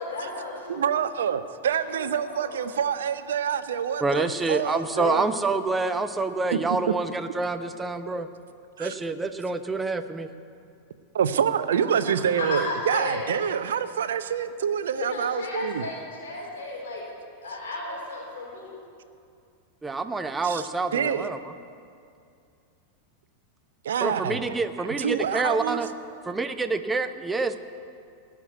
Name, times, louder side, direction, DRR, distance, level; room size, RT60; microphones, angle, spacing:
voice 1, 0.0-0.9 1.7-2.8 12.1-13.3 14.9-17.0 17.4-18.7, left 3 dB, 60° left, -2 dB, 3.9 m, -34 dB
voice 2, 0.7-5.3 8.8-8.9 11.1-15.8 20.4-20.6 20.9-21.3 23.8-24.4 24.8-25.8, right 8 dB, 65° right, 12 dB, 0.7 m, -26 dB
voice 3, 4.0-8.3 8.8-10.3 19.8-21.4 24.0-25.9 26.3-27.6, right 3 dB, 10° right, 10 dB, 0.8 m, -27 dB
18.0 x 6.1 x 9.2 m, 2.4 s
figure-of-eight pair, 90°, 0 cm